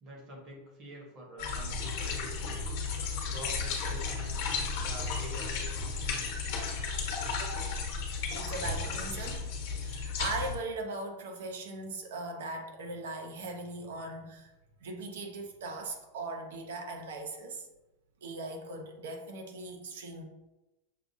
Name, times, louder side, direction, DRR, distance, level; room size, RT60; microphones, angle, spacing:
voice 1, 0.0-2.6 3.2-4.4 4.8-6.7, equal, 25° right, -2 dB, 1.0 m, -47 dB
sound 1, 1.4-10.6, left 4 dB, 45° left, 1.0 m, -34 dB
voice 2, 8.3-9.5 9.8-14.5 14.8-17.7 18.2-20.2, right 2 dB, 75° right, 3 dB, 0.8 m, -39 dB
6.5 x 2.4 x 2.6 m, 0.99 s
supercardioid pair, 180°, 0 cm